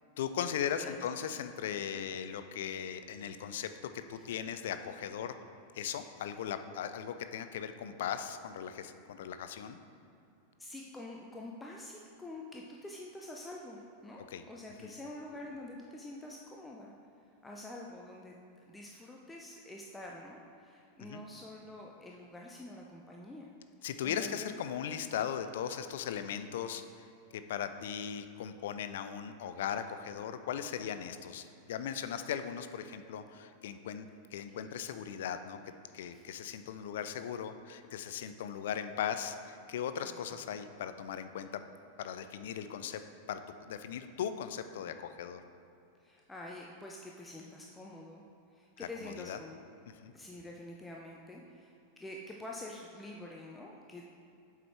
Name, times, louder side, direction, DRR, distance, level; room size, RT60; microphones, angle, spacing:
voice 1, 0.2-5.3 5.7-9.8 14.3-14.4 14.8-14.9 21.0-21.2 23.8-27.1 27.3-35.6 35.9-41.6 42.0-43.0 43.3-45.4 48.8-49.4 49.9-50.1, left 8 dB, 55° left, 10 dB, 0.4 m, -38 dB
voice 2, 10.6-16.9 17.4-18.4 18.6-23.5 24.0-24.5 36.1-36.3 40.0-40.1 46.0-48.2 48.5-49.6 50.1-54.1, left 1 dB, 10° left, -1 dB, 0.6 m, -47 dB
7.9 x 4.8 x 4.4 m, 2.7 s
figure-of-eight pair, 90°, 0 cm